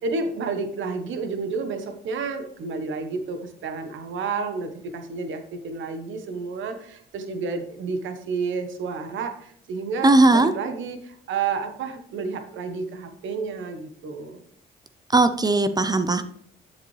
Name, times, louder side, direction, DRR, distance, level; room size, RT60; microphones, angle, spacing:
voice 1, 0.0-14.4, right 4 dB, 75° right, 7 dB, 1.1 m, -30 dB
voice 2, 10.0-10.5 15.1-16.2, right 2 dB, 20° right, 10 dB, 0.6 m, -18 dB
7.4 x 7.3 x 3.3 m, 0.65 s
cardioid pair, 90°, 20 cm